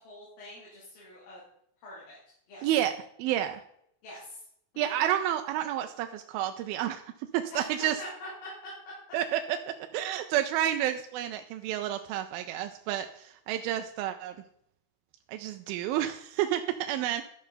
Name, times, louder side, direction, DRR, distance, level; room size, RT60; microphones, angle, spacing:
voice 1, 0.0-1.4 1.8-2.2 2.5-2.7 4.0-4.4 4.7-4.9 7.5-8.7, left 1 dB, 75° left, -7 dB, 4.6 m, -44 dB
voice 2, 2.6-2.9 3.2-3.6 4.8-7.0 7.3-8.0 9.1-14.4 15.3-17.2, right 12 dB, 85° right, 7 dB, 2.3 m, -30 dB
12.0 x 6.7 x 3.9 m, 0.71 s
omnidirectional pair, 4.3 m